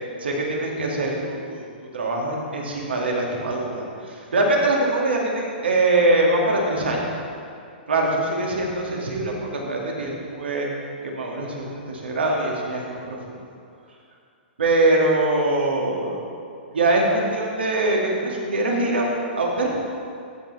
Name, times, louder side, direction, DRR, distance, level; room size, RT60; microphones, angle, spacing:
voice 1, 0.2-1.7 1.9-7.0 7.9-10.7 11.0-13.4 14.6-16.2 16.7-19.7, right 2 dB, 85° right, -1 dB, 1.9 m, -23 dB
14.0 x 5.5 x 4.1 m, 2.3 s
hypercardioid pair, 125°, 6 cm